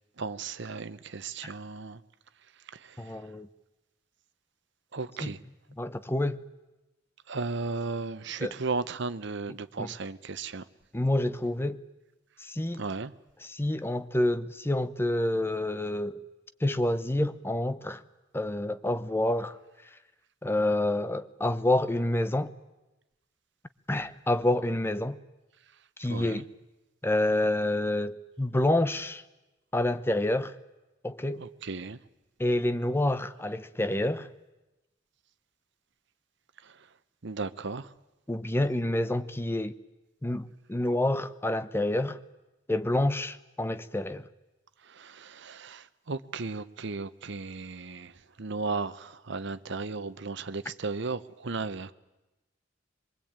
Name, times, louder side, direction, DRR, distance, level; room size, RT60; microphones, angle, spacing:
voice 1, 0.2-2.0 2.7-3.3 4.9-5.4 7.3-10.7 12.8-13.1 26.1-26.5 31.3-32.0 36.6-36.9 37.2-37.9 44.8-51.9, right 4 dB, 65° right, 0.9 m, -35 dB
voice 2, 3.0-3.5 5.2-5.3 5.8-6.4 8.4-8.5 9.8-9.9 10.9-11.8 12.4-12.8 13.5-16.2 16.6-18.0 18.3-19.6 20.4-22.5 23.9-25.2 26.0-26.4 27.0-29.2 29.7-30.5 31.0-31.4 32.4-34.3 38.3-39.7 40.2-42.2 42.7-44.3, left 1 dB, 10° left, 0.8 m, -28 dB
23.5 x 22.0 x 8.9 m
head